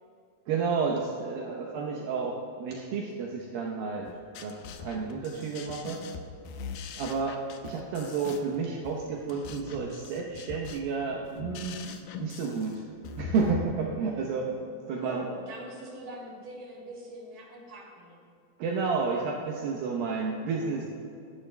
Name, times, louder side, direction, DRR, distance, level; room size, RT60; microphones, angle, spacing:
voice 1, 0.5-4.1 4.4-6.0 7.0-11.8 12.2-12.8 13.2-14.5 14.9-15.3 18.6-20.9, right 5 dB, 75° right, -1 dB, 2.6 m, -31 dB
sound 1, 4.1-13.6, left 6 dB, 75° left, 2.4 m, -42 dB
voice 2, 15.0-18.2, right 1 dB, 35° right, -3 dB, 3.1 m, -42 dB
24.0 x 10.5 x 2.2 m, 2.6 s
omnidirectional pair, 4.5 m